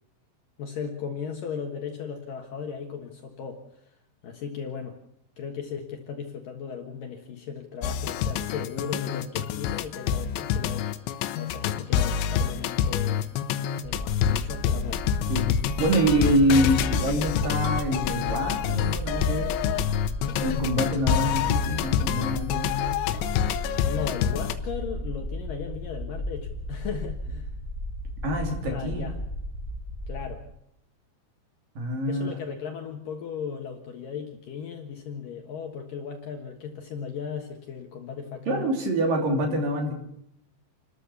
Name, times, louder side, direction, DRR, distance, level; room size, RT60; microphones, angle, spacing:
voice 1, 0.6-3.6 4.2-5.0 5.4-13.3 13.8-15.0 23.8-27.5 28.7-29.2 30.1-30.4 32.0-38.7, left 6 dB, 60° left, 3 dB, 2.6 m, -36 dB
sound 1, 7.8-24.5, left 9 dB, 80° left, 3.3 m, -27 dB
sound 2, 13.8-30.4, left 1 dB, 35° left, 1.0 m, -35 dB
voice 2, 15.3-19.5 20.4-22.7 28.2-29.1 31.8-32.4 38.5-39.9, right 1 dB, 50° right, 3 dB, 4.2 m, -25 dB
29.5 x 13.5 x 7.0 m, 0.78 s
omnidirectional pair, 5.3 m